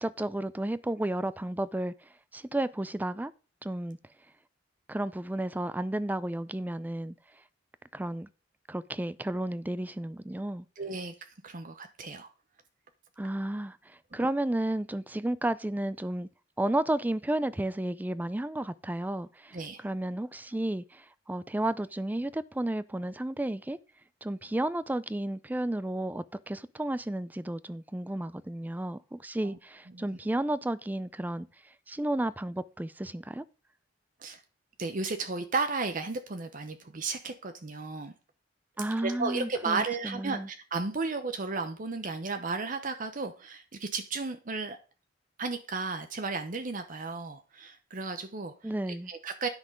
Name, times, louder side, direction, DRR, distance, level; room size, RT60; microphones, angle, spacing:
voice 1, 0.0-1.9 2.3-3.3 3.6-4.0 4.9-7.1 7.9-8.3 8.7-10.7 13.2-16.3 16.6-23.8 24.2-31.5 31.9-33.4 38.8-40.5 48.6-49.1, right 1 dB, 10° right, 0.4 m, -32 dB
voice 2, 10.8-11.1 11.4-12.3 14.1-14.3 19.5-19.8 29.4-29.6 29.9-30.0 34.2-34.4 34.8-38.1 39.0-44.8 45.4-48.7 49.1-49.5, right 4 dB, 45° right, 0.8 m, -34 dB
9.8 x 6.1 x 5.0 m
head